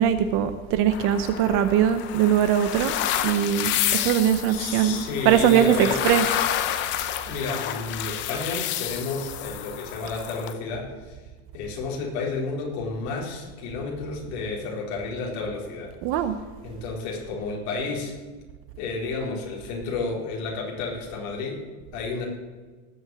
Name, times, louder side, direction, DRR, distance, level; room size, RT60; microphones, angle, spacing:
voice 1, 0.0-2.9 3.2-6.4 6.7-6.8 16.0-16.4, right 9 dB, 30° right, 10 dB, 0.6 m, -21 dB
sound 1, 0.9-10.5, left 12 dB, 25° left, 0.7 m, -29 dB
voice 2, 4.5-6.0 7.3-11.2 11.5-15.9 16.6-18.1 18.8-21.6 21.9-22.2, left 4 dB, 50° left, -1 dB, 4.5 m, -31 dB
18.0 x 7.8 x 7.9 m, 1.4 s
supercardioid pair, 170°, 42 cm